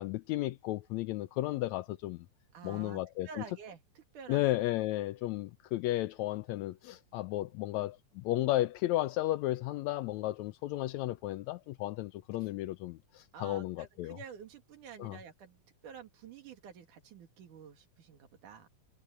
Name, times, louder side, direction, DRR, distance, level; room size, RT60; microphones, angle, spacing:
voice 1, 0.0-2.3 2.6-3.4 4.3-14.2 15.0-15.2, left 16 dB, 80° left, 1.7 m, -34 dB
voice 2, 2.5-4.5 12.4-12.5 13.3-18.7, right 7 dB, 80° right, 3.7 m, -50 dB
omnidirectional pair, 3.5 m